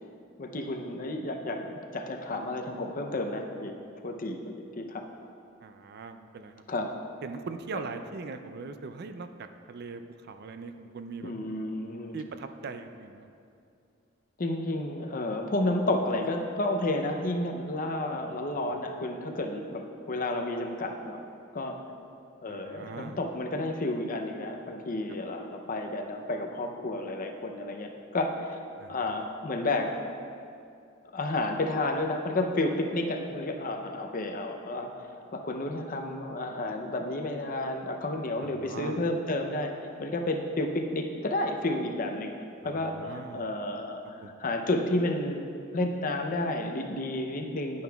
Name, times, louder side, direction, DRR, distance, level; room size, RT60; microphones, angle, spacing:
voice 1, 0.4-5.0 6.7-6.9 7.7-7.8 11.2-12.2 14.4-21.2 21.5-21.8 22.4-28.6 28.9-30.1 31.1-39.7 40.0-42.3 42.6-44.0 44.4-47.8, left 2 dB, 45° left, 4 dB, 0.6 m, -31 dB
voice 2, 5.6-6.5 7.2-11.3 12.1-13.3 18.1-18.9 22.5-23.2 28.8-29.2 38.4-39.0 42.6-43.4 44.2-44.3, right 4 dB, 50° right, 8 dB, 0.4 m, -41 dB
10.5 x 9.3 x 2.3 m, 2.5 s
head